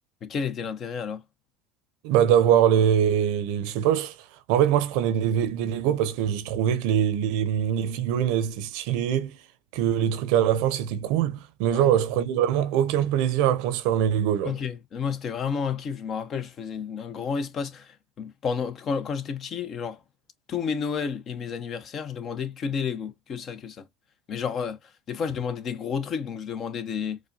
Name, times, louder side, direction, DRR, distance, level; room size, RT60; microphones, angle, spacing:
voice 1, 0.2-1.2 11.7-11.9 14.4-20.0 20.5-23.9 24.3-27.2, left 6 dB, 40° left, 0.8 m, -31 dB
voice 2, 2.0-4.1 4.5-9.4 9.7-14.6, right 9 dB, 70° right, 0.7 m, -23 dB
4.8 x 2.2 x 2.7 m
supercardioid pair, 100°, 0 cm